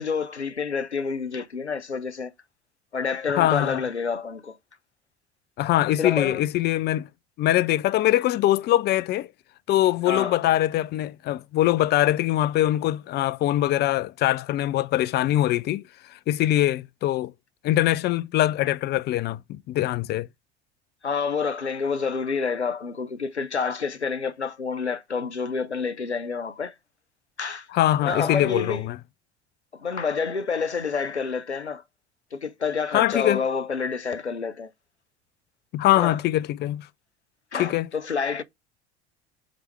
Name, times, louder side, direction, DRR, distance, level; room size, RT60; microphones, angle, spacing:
voice 1, 0.0-2.3 2.9-4.6 6.0-6.4 10.1-10.4 21.0-26.7 27.4-27.7 28.0-28.8 29.8-31.8 32.3-34.7 36.0-36.2 37.5-38.4, left 5 dB, 90° left, 0.6 m, -28 dB
voice 2, 3.4-3.8 5.6-7.1 7.4-9.3 9.7-15.8 16.3-17.3 17.6-20.3 27.7-29.0 32.9-33.4 35.7-36.9 37.6-37.9, left 14 dB, 30° left, 0.5 m, -23 dB
7.5 x 3.4 x 4.5 m
figure-of-eight pair, 70°, 33 cm